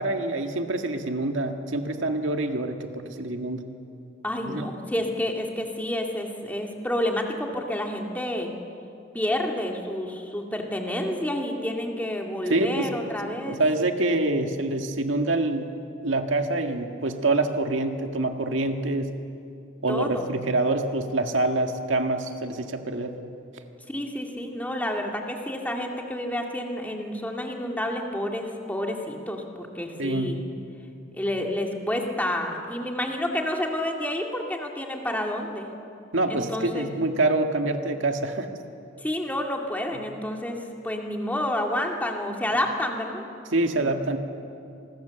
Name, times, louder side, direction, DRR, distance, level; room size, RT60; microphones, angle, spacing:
voice 1, 0.0-3.6 4.4-4.7 12.5-12.9 13.2-15.7 16.0-19.1 19.8-23.2 30.0-30.4 36.1-38.5 39.9-40.0 43.5-44.2, right 2 dB, 75° right, 5 dB, 1.8 m, -26 dB
voice 2, 4.2-8.5 9.1-13.6 19.9-20.3 23.9-30.4 31.1-35.7 36.3-36.9 39.0-40.6 40.8-43.2 43.8-43.9, left 1 dB, 10° left, 1 dB, 2.2 m, -29 dB
25.5 x 20.5 x 7.1 m, 2.6 s
head